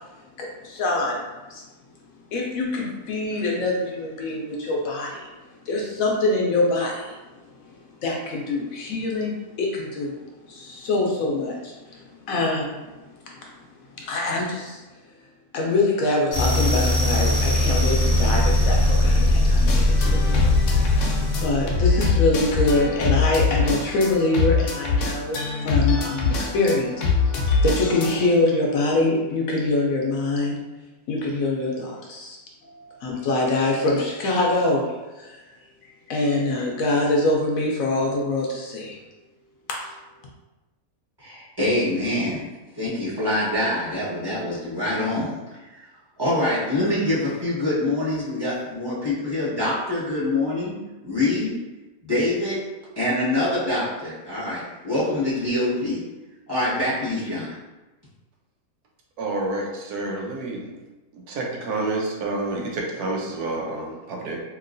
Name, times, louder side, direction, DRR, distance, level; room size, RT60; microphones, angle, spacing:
voice 1, 0.4-1.2 1.5-1.6 2.3-5.2 5.7-7.2 8.0-10.2 10.5-12.9 14.0-14.8 15.5-20.5 20.7-21.1 21.4-27.0 27.3-30.6 31.1-35.4 36.1-39.0 39.7-39.9, left 2 dB, 70° left, -1 dB, 1.0 m, -24 dB
sound 1, 16.3-23.8, left 1 dB, 50° left, 0.4 m, -21 dB
sound 2, 19.7-28.2, left 4 dB, 90° left, 1.1 m, -23 dB
voice 2, 41.2-42.4 42.7-45.4 46.2-50.8 51.0-51.5 52.0-52.7 53.0-56.0 56.5-57.5, left 1 dB, 15° right, -11 dB, 1.2 m, -25 dB
voice 3, 59.2-60.7 61.1-64.4, right 2 dB, 85° right, -1 dB, 1.2 m, -29 dB
3.0 x 2.9 x 2.5 m, 1.1 s
omnidirectional pair, 1.6 m